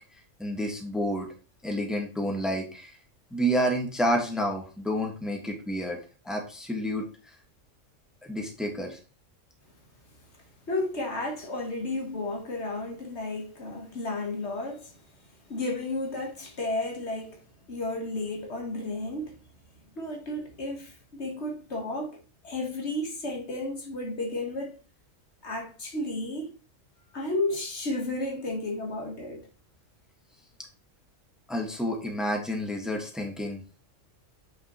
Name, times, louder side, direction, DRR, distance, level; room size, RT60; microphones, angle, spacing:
voice 1, 0.4-1.3 1.6-3.0 3.3-6.0 6.2-7.1 8.2-9.0 31.5-33.6, equal, ahead, 1.5 m, -29 dB
voice 2, 10.7-14.9 15.5-17.4 17.7-19.4 19.9-24.8 25.4-26.5 27.1-29.5, left 2 dB, 55° left, 1.6 m, -32 dB
8.9 x 5.3 x 3.0 m
omnidirectional pair, 1.4 m